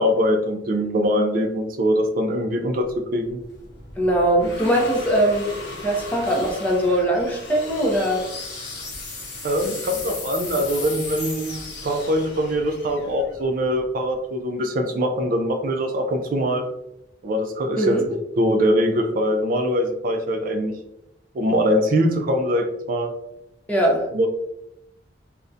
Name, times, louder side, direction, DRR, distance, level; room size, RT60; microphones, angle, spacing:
voice 1, 0.0-3.4 9.4-16.6 17.2-20.7 21.3-23.1 24.1-24.3, equal, 50° right, 3 dB, 0.3 m, -22 dB
sound 1, 2.9-14.1, left 3 dB, 65° left, 0.7 m, -36 dB
voice 2, 4.0-5.5 5.8-8.2 17.8-18.0 23.7-24.0, right 1 dB, 10° left, -1 dB, 0.5 m, -21 dB
2.4 x 2.1 x 2.6 m, 0.84 s
head